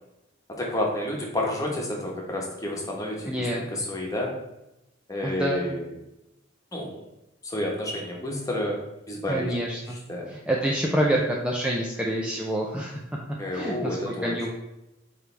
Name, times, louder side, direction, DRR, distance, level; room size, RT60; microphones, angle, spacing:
voice 1, 0.5-4.3 5.1-5.9 6.7-7.0 7.4-8.8 9.1-9.5 9.9-10.3 13.4-14.3, left 1 dB, 20° left, -1 dB, 1.3 m, -30 dB
voice 2, 3.3-3.7 5.2-5.6 9.3-10.0 10.3-13.0 13.5-14.5, right 1 dB, 5° right, -3 dB, 0.6 m, -27 dB
8.9 x 3.4 x 3.4 m, 0.91 s
head